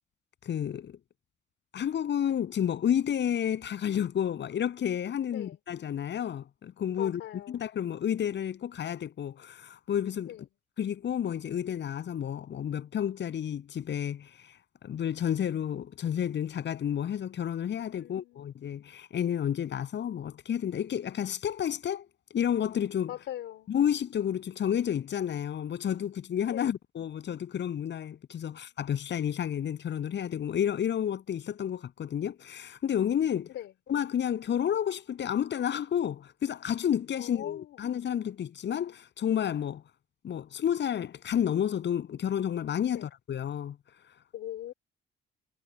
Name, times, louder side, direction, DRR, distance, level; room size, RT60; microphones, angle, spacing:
voice 1, 0.4-1.0 1.7-7.2 7.5-10.3 10.8-14.5 14.8-23.1 23.7-33.5 33.9-39.8 40.2-43.8, left 9 dB, 65° left, 7.9 m, -31 dB
voice 2, 7.0-7.6 10.3-10.4 18.0-18.5 23.1-23.7 26.5-26.7 28.5-28.6 33.5-33.7 37.2-37.8 42.9-43.1 44.3-44.7, left 12 dB, 80° left, 3.8 m, -41 dB
cardioid pair, 90°, 20 cm